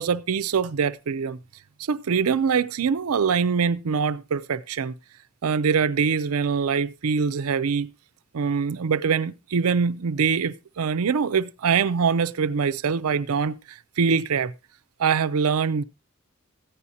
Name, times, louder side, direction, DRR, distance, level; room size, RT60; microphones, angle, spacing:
voice 1, 0.0-1.4 1.9-4.9 5.4-7.9 8.3-14.5 15.0-15.8, right 6 dB, 85° right, 0.5 m, -23 dB
14.5 x 9.7 x 2.7 m
head